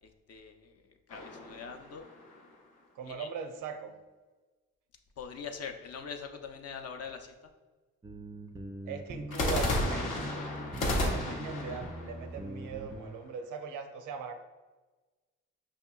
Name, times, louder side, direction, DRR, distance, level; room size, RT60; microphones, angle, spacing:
voice 1, 0.0-2.0 3.0-3.3 5.2-7.3, left 6 dB, 50° left, 5 dB, 0.5 m, -43 dB
sound 1, 1.1-2.5 9.3-13.3, left 1 dB, 85° left, 0.7 m, -33 dB
voice 2, 3.0-4.0 8.8-10.4 11.0-14.3, right 6 dB, 80° right, 7 dB, 0.5 m, -40 dB
sound 2, 8.0-13.1, right 1 dB, 15° right, 0.4 m, -42 dB
5.1 x 2.8 x 2.3 m, 1.3 s
supercardioid pair, 60°, 31 cm